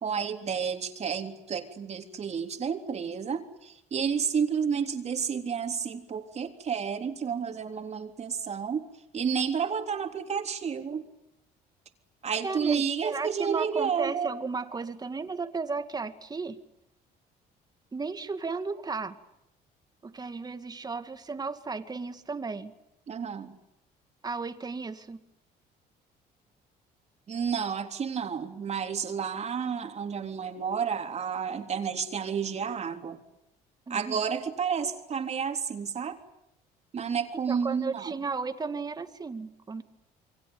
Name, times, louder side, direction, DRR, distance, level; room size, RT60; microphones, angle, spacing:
voice 1, 0.0-8.8 9.1-11.0 12.2-14.3 23.1-23.6 27.3-33.2 33.9-36.2 36.9-38.2, right 7 dB, 40° right, 5 dB, 3.5 m, -31 dB
voice 2, 12.4-16.6 17.9-19.2 20.0-22.7 24.2-25.2 33.9-34.2 37.5-39.8, right 4 dB, 25° right, 9 dB, 2.3 m, -34 dB
28.0 x 23.5 x 8.8 m, 0.84 s
cardioid pair, 110°, 17 cm